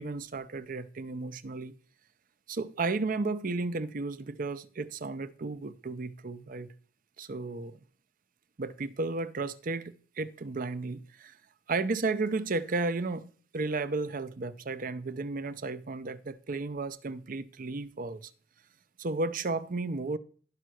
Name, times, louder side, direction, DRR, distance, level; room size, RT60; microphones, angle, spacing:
voice 1, 0.0-1.7 2.5-6.7 7.2-7.8 8.6-11.4 11.7-18.3 19.0-20.2, right 3 dB, 50° right, 0.6 m, -33 dB
11.5 x 5.6 x 6.2 m
head